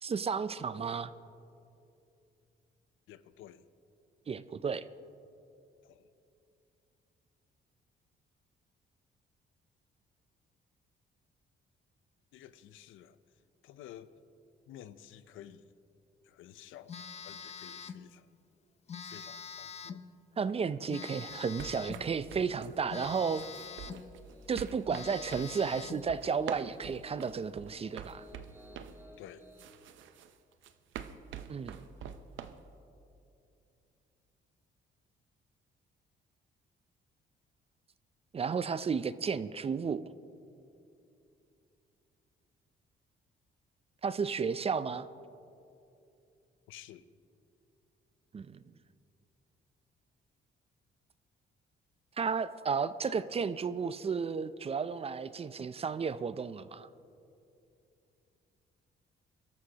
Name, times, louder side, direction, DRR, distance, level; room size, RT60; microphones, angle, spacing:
voice 1, 0.0-1.1 4.3-4.8 20.4-23.4 24.5-28.3 31.5-31.8 38.3-40.0 44.0-45.1 48.3-48.6 52.2-56.9, right 6 dB, 30° right, 15 dB, 0.4 m, -33 dB
voice 2, 3.1-3.7 5.8-6.1 12.3-13.2 13.6-14.1 14.7-15.7 16.2-17.0 17.2-18.3 19.0-20.0 29.2-29.4 46.7-47.1, left 11 dB, 85° left, 14 dB, 0.6 m, -52 dB
Telephone, 16.9-18.1 18.9-20.1 20.9-22.1 22.9-24.1 24.5-24.6 24.9-26.1, left 6 dB, 35° left, 0.5 m, -44 dB
sound 1, 21.3-29.0 29.6-32.6, right 9 dB, 75° right, 0.7 m, -46 dB
Piano, 23.3-29.6, equal, 15° right, 2.1 m, -57 dB
23.0 x 13.0 x 2.9 m, 2.7 s
cardioid pair, 90°, 20 cm